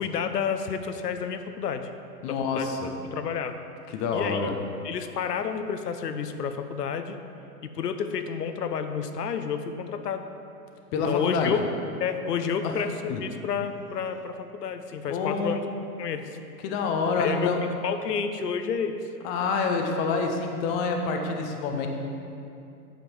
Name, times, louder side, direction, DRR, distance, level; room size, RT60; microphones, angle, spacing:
voice 1, 0.0-1.9 2.3-2.7 3.0-3.6 4.1-4.5 4.8-7.2 7.6-10.3 11.0-11.6 12.0-15.6 16.0-16.3 17.2-17.5 17.8-19.0, left 7 dB, 85° left, 8 dB, 0.8 m, -30 dB
voice 2, 2.2-2.9 3.9-4.5 10.9-11.5 12.6-12.7 13.1-13.2 15.1-15.6 16.6-17.6 19.2-21.9, left 4 dB, 20° left, 3 dB, 0.4 m, -27 dB
8.8 x 5.3 x 6.0 m, 2.6 s
hypercardioid pair, 125°, 46 cm